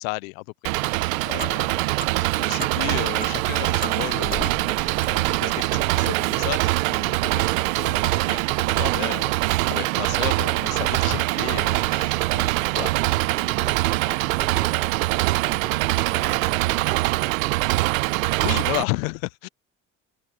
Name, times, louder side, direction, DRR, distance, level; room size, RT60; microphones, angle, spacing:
voice 1, 0.0-1.8 2.4-12.9 18.4-19.5, left 24 dB, 85° left, 0.6 m, -33 dB
Engine, 0.6-18.8, right 22 dB, 80° right, 0.9 m, -23 dB
Clock, 0.9-5.9, left 3 dB, 20° left, 7.6 m, -39 dB
voice 2, 10.0-10.1, right 1 dB, 5° right, 4.7 m, -44 dB
open air
hypercardioid pair, 65°, 40 cm